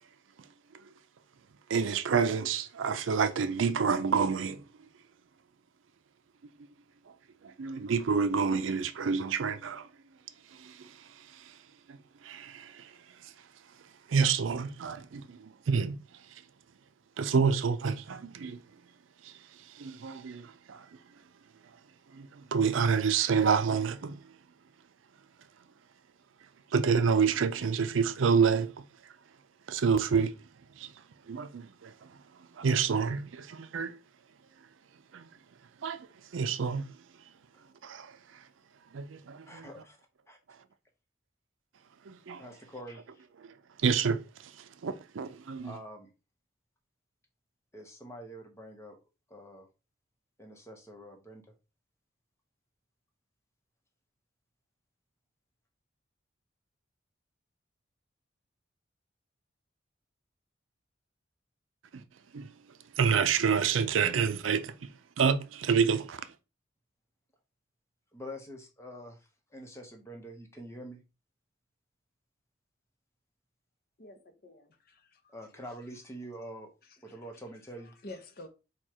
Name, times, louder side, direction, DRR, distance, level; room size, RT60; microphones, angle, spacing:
voice 1, 1.7-4.6 7.4-9.9 10.5-11.6 11.9-12.9 13.2-13.3 14.1-16.0 16.3-16.4 17.2-18.6 19.2-20.9 22.1-24.2 26.7-28.8 29.7-30.4 30.8-30.9 31.3-32.1 32.5-34.0 35.1-35.3 35.8-36.1 36.3-36.9 37.8-38.4 38.9-39.7 42.1-42.4 43.8-45.7 61.9-62.0 62.3-62.5 63.0-64.9 65.2-66.3, right 6 dB, 85° right, 0.5 m, -29 dB
voice 2, 39.4-40.0 40.3-40.4 42.4-43.2 45.6-46.1 47.7-49.0 49.3-49.7 50.4-51.4 68.1-71.0 75.3-76.7 77.0-77.9, equal, 15° left, 0.9 m, -46 dB
voice 3, 74.0-75.6 77.1-77.2 78.0-78.5, left 2 dB, 50° left, 0.7 m, -49 dB
4.5 x 2.3 x 4.7 m
head